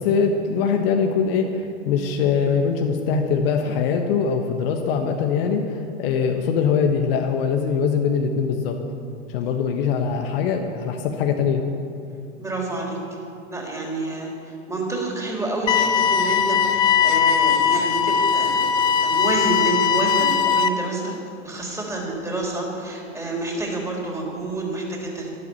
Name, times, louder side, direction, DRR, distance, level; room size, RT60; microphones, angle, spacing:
voice 1, 0.0-8.8 9.3-11.6, left 6 dB, 50° left, 4 dB, 1.3 m, -22 dB
voice 2, 12.4-13.2 13.5-18.6 19.0-21.1 21.4-25.4, right 2 dB, 10° right, -2 dB, 3.8 m, -28 dB
sound 1, 15.7-20.7, left 7 dB, 15° left, 0.3 m, -19 dB
12.5 x 12.5 x 7.0 m, 2.6 s
figure-of-eight pair, 85°, 37 cm